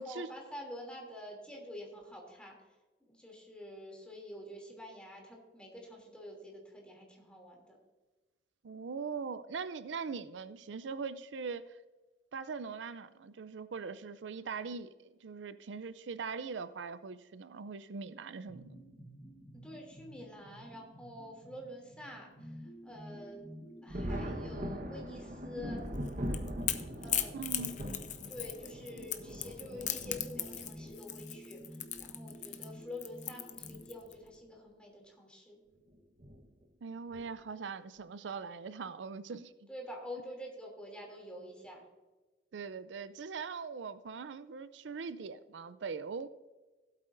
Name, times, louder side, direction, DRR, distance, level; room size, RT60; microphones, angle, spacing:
voice 1, 0.0-2.6 3.1-7.8 19.6-23.5 23.8-25.8 27.0-27.4 28.3-35.6 39.7-41.8, left 1 dB, 5° left, 0 dB, 2.8 m, -47 dB
voice 2, 8.6-11.8 12.3-18.8 27.3-27.8 36.8-39.7 42.5-46.3, right 5 dB, 85° right, 13 dB, 0.5 m, -41 dB
sound 1, 18.4-34.0, equal, 75° left, 3.5 m, -52 dB
Thunder, 23.9-30.9 32.0-32.1 33.5-33.8 34.1-34.2 36.2-36.4 37.1-37.5, equal, 50° right, 1.2 m, -41 dB
Crackle / Crack, 25.9-34.1, left 11 dB, 45° left, 0.7 m, -38 dB
16.0 x 8.3 x 2.6 m, 1.2 s
head